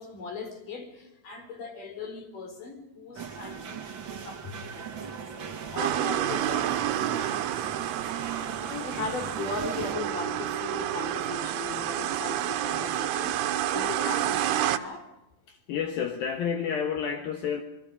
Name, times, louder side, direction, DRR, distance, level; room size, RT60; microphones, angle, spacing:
voice 1, 0.0-5.3 5.7-6.9 8.6-13.4 13.7-15.1, left 4 dB, 50° left, 6 dB, 5.1 m, -38 dB
sound 1, 3.1-9.9, right 6 dB, 55° right, 1.3 m, -39 dB
sound 2, 5.8-14.8, right 11 dB, 75° right, 2.9 m, -29 dB
voice 2, 15.5-17.6, left 7 dB, 65° left, 5 dB, 2.8 m, -30 dB
28.0 x 23.0 x 5.1 m, 0.96 s
omnidirectional pair, 4.9 m